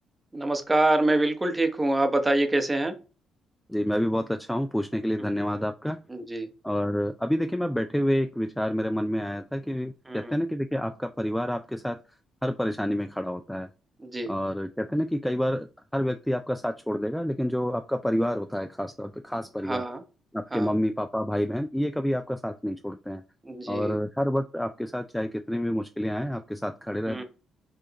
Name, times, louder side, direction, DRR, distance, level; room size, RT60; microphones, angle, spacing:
voice 1, 0.3-2.9 5.2-5.3 6.1-6.5 10.1-10.4 14.0-14.3 19.6-20.0 20.5-20.7 23.4-24.0 27.1-27.2, right 2 dB, 15° right, 6 dB, 0.9 m, -25 dB
voice 2, 3.7-6.0 6.6-12.0 12.4-13.7 14.3-19.8 20.3-23.2 23.7-27.2, equal, 5° left, 7 dB, 0.3 m, -28 dB
4.9 x 2.5 x 2.8 m, 0.33 s
supercardioid pair, 70°, 0 cm